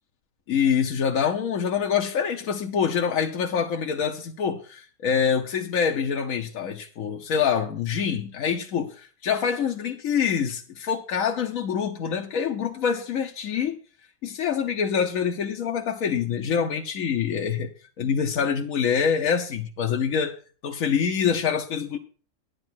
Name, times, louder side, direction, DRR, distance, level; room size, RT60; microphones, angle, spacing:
voice 1, 0.5-13.8 14.2-17.7 18.0-20.4 20.6-22.0, left 7 dB, 85° left, 1.3 m, -25 dB
10.5 x 9.4 x 4.5 m
omnidirectional pair, 1.4 m